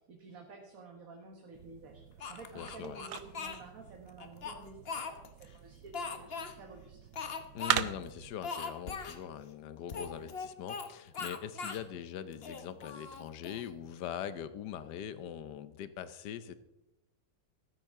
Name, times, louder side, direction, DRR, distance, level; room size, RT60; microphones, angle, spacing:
voice 1, 0.1-7.1, right 3 dB, 55° right, 2 dB, 1.8 m, -51 dB
sound 1, 1.5-8.4, right 10 dB, 75° right, 1.2 m, -40 dB
Speech, 2.2-3.6 4.2-5.5 5.9-6.5 7.1-7.8 8.0-8.1 8.4-9.2 9.9-10.9 11.1-11.8 12.3-13.7, left 5 dB, 40° left, 1.0 m, -40 dB
voice 2, 2.5-3.0 7.5-16.5, left 9 dB, 75° left, 13 dB, 1.4 m, -42 dB
15.0 x 13.5 x 3.7 m, 0.96 s
omnidirectional pair, 1.9 m